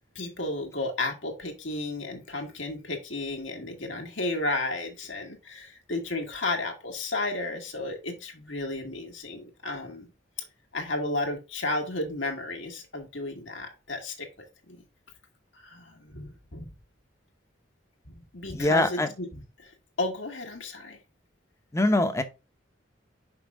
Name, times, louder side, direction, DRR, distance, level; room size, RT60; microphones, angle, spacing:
voice 1, 0.1-10.1 10.7-14.3 14.7-14.8 15.6-16.7 18.0-19.3 19.6-19.7 20.0-21.0, left 2 dB, 75° left, 1.5 m, -33 dB
voice 2, 18.5-19.1 21.7-22.2, left 1 dB, 15° left, 0.7 m, -23 dB
5.4 x 5.3 x 3.5 m
head